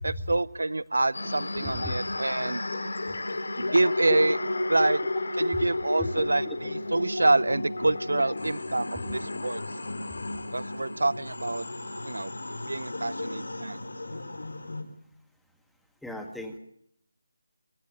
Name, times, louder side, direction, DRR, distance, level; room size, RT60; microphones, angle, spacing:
voice 1, 0.0-2.6 3.6-4.4 4.7-5.0 5.3-9.6 10.5-11.7 12.0-12.3 12.6-13.9, right 2 dB, 80° right, 21 dB, 0.7 m, -27 dB
sound 1, 1.1-14.8, left 2 dB, 75° left, 4.3 m, -33 dB
voice 2, 1.6-2.0 4.1-4.2 6.0-6.6 16.0-16.6, left 1 dB, ahead, 4 dB, 1.7 m, -36 dB
23.5 x 17.0 x 6.9 m, 0.70 s
figure-of-eight pair, 165°, 0 cm